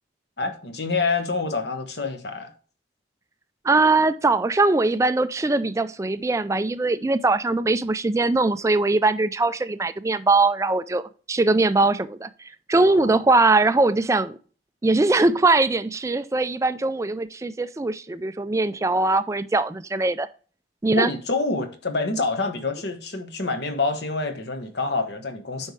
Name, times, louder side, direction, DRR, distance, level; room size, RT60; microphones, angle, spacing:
voice 1, 0.4-2.5 12.8-13.1 20.9-25.7, left 3 dB, 60° left, 1.1 m, -27 dB
voice 2, 3.6-12.3 12.7-14.4 14.8-20.3 20.8-21.1, right 3 dB, 15° right, 0.3 m, -21 dB
8.8 x 5.4 x 3.2 m
head